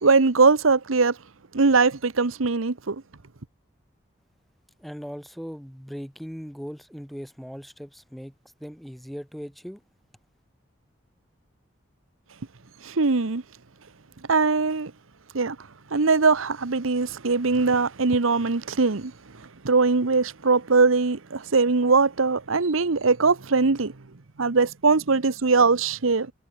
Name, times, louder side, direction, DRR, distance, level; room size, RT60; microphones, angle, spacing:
voice 1, 0.0-1.2 1.5-3.0 12.8-13.4 14.3-14.9 15.3-15.6 15.9-19.1 19.6-23.9 24.4-26.3, right 4 dB, 90° right, 1.0 m, -21 dB
voice 2, 4.8-9.8, equal, ahead, 5.8 m, -39 dB
head